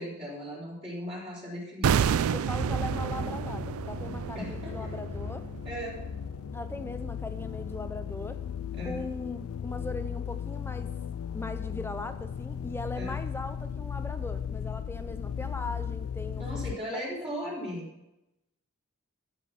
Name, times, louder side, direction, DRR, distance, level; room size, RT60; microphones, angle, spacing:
voice 1, 0.0-1.9 4.3-4.9 5.6-6.0 8.7-9.1 12.9-13.1 16.4-17.9, equal, 25° right, -7 dB, 3.7 m, -37 dB
sound 1, 1.8-6.9 7.1-7.3, right 7 dB, 85° right, 0.4 m, -30 dB
voice 2, 2.3-5.5 6.5-8.4 8.8-10.9 11.3-16.5 16.9-17.0, left 2 dB, 10° left, 9 dB, 0.5 m, -39 dB
sound 2, 2.6-16.8, left 8 dB, 85° left, 0.4 m, -36 dB
14.0 x 7.3 x 5.8 m, 0.93 s
head